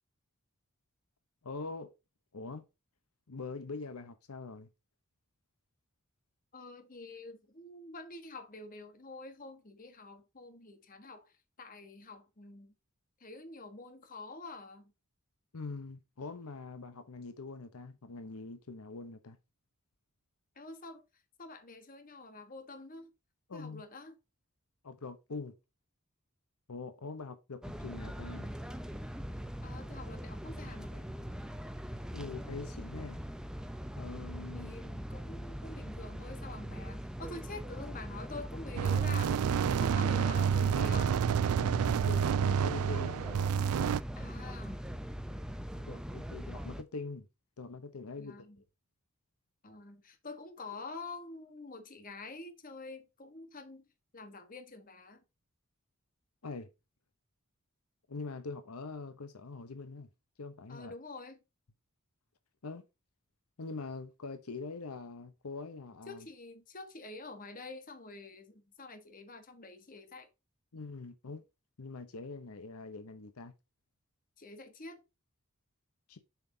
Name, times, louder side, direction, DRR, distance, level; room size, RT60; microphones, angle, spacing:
voice 1, 1.4-1.9 2.3-2.6 3.3-4.7 15.5-19.4 23.5-23.8 24.8-25.5 26.7-28.5 32.1-33.2 34.0-34.7 41.6-43.2 45.9-47.3 47.6-48.6 56.4-56.7 58.1-60.1 60.4-60.9 62.6-62.8 63.6-66.3 70.7-71.4 71.8-73.5 76.1-76.2, left 3 dB, 85° left, 0.8 m, -43 dB
voice 2, 6.5-11.3 11.6-12.7 13.2-14.9 20.6-21.0 21.4-23.1 23.5-24.1 29.6-31.1 34.5-39.4 39.7-41.2 44.2-44.8 45.7-45.9 48.2-48.6 49.6-53.9 54.1-55.2 60.7-61.4 66.1-70.3 74.4-75.0, left 3 dB, 40° left, 1.3 m, -47 dB
sound 1, 27.6-46.8, equal, 5° right, 0.5 m, -42 dB
sound 2, 38.8-44.0, right 7 dB, 85° right, 0.3 m, -29 dB
7.3 x 5.9 x 2.7 m
head